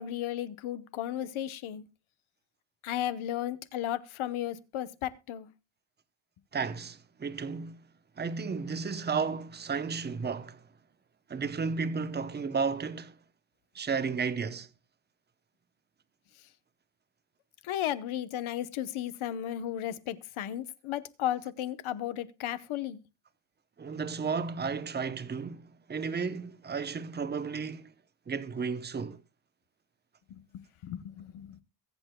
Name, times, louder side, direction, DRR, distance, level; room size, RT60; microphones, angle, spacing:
voice 1, 0.0-1.8 2.8-5.5 17.6-23.0 30.3-31.6, left 12 dB, 90° left, 1.0 m, -34 dB
voice 2, 6.5-7.8 8.2-10.6 11.3-13.2 13.7-14.7 23.8-27.9 28.3-29.2, right 5 dB, 20° right, 0.8 m, -33 dB
22.5 x 8.3 x 2.2 m
cardioid pair, 125°, 47 cm